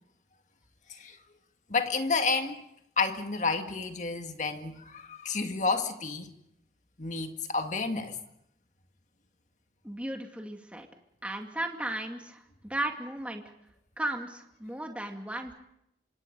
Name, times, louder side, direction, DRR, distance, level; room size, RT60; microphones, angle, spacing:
voice 1, 1.7-2.6 3.0-6.3 7.0-8.2, left 4 dB, 45° left, 1.9 m, -30 dB
voice 2, 9.8-10.9 11.2-13.4 14.0-15.5, right 1 dB, 5° right, 2.4 m, -35 dB
27.0 x 26.0 x 5.4 m
head